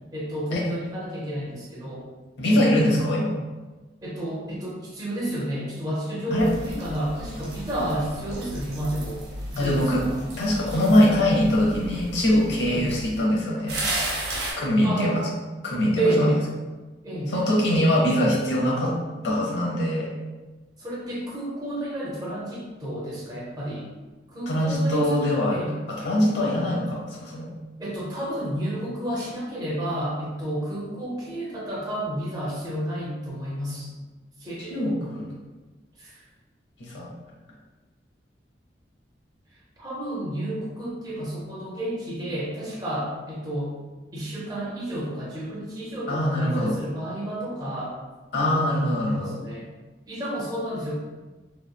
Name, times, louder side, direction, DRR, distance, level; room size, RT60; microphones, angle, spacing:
voice 1, 0.1-2.1 4.0-9.3 9.5-10.2 12.7-13.0 14.8-15.2 16.0-16.4 17.0-17.4 20.8-23.9 24.3-25.8 27.8-33.9 34.4-34.8 36.0-36.2 39.8-43.7 44.1-47.9 48.5-49.7 50.1-50.9, right 1 dB, 20° right, -6 dB, 0.7 m, -30 dB
voice 2, 2.4-3.4 6.3-6.5 9.6-10.0 10.4-13.8 14.6-15.3 15.6-16.4 17.3-19.0 19.2-20.1 24.5-25.6 26.0-27.5 34.7-35.3 36.8-37.1 46.1-46.8 48.3-49.3, left 1 dB, 75° left, -3 dB, 0.7 m, -22 dB
sound 1, 6.4-13.2 13.7-14.5, right 1 dB, 60° right, 0.7 m, -34 dB
2.9 x 2.1 x 2.2 m, 1.2 s
head